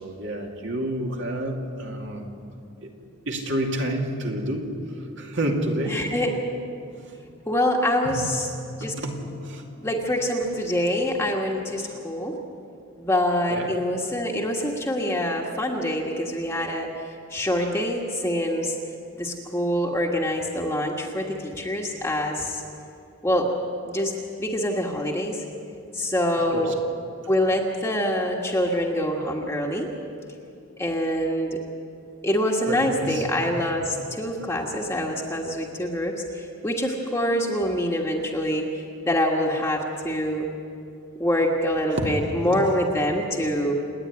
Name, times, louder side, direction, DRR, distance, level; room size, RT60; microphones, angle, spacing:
voice 1, 0.0-2.3 2.8-2.9 3.3-4.7 5.2-6.0 8.1-8.2 8.8-9.6 11.8-12.0 13.5-13.7 26.5-26.7 32.7-33.7 41.9-42.1 42.5-42.6, right 1 dB, 55° right, 1 dB, 2.6 m, -29 dB
voice 2, 5.9-6.3 7.5-8.5 8.8-8.9 9.8-12.4 13.0-18.7 19.2-22.6 23.2-23.5 23.8-24.1 24.4-25.4 25.9-26.7 27.3-29.9 30.8-31.6 32.2-40.5 41.2-43.7, equal, 10° left, -1 dB, 1.5 m, -25 dB
28.0 x 10.0 x 9.6 m, 2.5 s
head